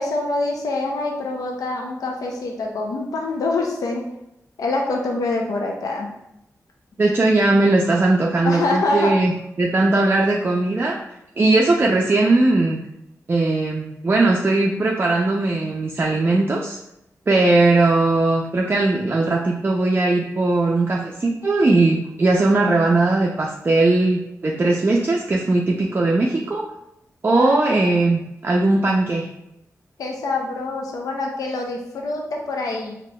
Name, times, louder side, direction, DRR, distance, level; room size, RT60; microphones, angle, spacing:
voice 1, 0.0-4.0 4.6-6.1 8.4-9.1 27.3-27.9 30.0-33.0, left 2 dB, 85° left, 0 dB, 0.5 m, -25 dB
voice 2, 7.0-9.3 9.6-11.0 11.4-12.8 13.3-16.8 17.3-26.7 27.2-29.3, right 2 dB, 35° right, -1 dB, 0.4 m, -19 dB
4.0 x 2.8 x 2.2 m, 0.84 s
cardioid pair, 60°, 6 cm